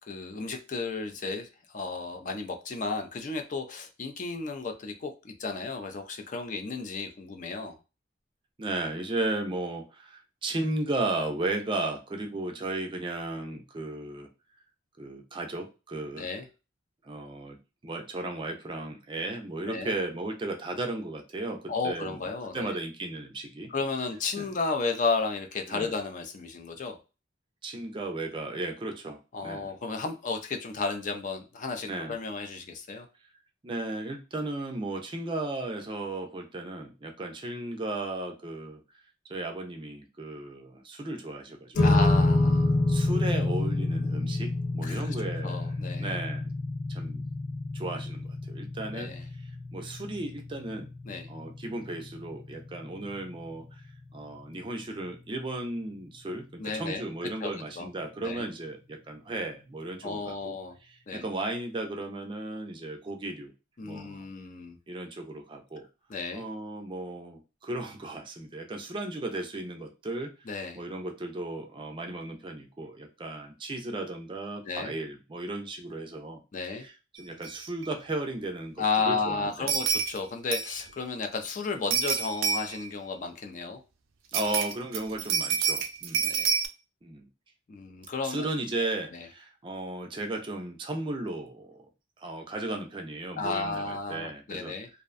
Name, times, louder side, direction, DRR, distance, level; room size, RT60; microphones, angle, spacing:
voice 1, 0.1-7.8 16.2-16.5 19.6-19.9 21.7-22.8 23.7-27.0 29.3-33.1 41.8-42.7 44.8-45.1 45.4-46.2 48.9-49.2 51.1-51.3 56.6-57.9 58.2-58.4 60.0-60.8 61.1-61.3 63.8-64.8 66.1-66.5 70.5-70.8 74.6-74.9 76.5-76.9 78.8-83.8 86.2-86.5 87.7-88.5 89.1-89.3 93.4-94.9, left 4 dB, 40° left, 5 dB, 0.4 m, -33 dB
voice 2, 8.6-14.3 15.0-16.3 17.0-17.6 17.8-22.2 22.5-23.7 24.4-24.5 25.7-25.9 27.6-29.7 31.8-32.2 33.6-38.8 39.3-42.0 42.9-45.7 46.0-46.5 46.9-47.3 47.7-50.9 51.3-53.8 54.1-60.6 60.9-63.5 63.8-64.3 64.9-65.9 66.3-70.3 70.7-76.4 76.7-79.7 84.3-86.3 87.0-87.3 88.2-91.9 92.2-94.7, right 2 dB, 25° right, 4 dB, 0.4 m, -35 dB
sound 1, 41.7-54.3, left 2 dB, 75° left, 1.1 m, -29 dB
sound 2, 77.4-77.5 77.8-77.9 79.7-80.2 80.5-80.8 81.9-82.9 84.3-86.7, right 6 dB, 90° right, 0.4 m, -28 dB
2.5 x 2.1 x 2.4 m, 0.30 s
head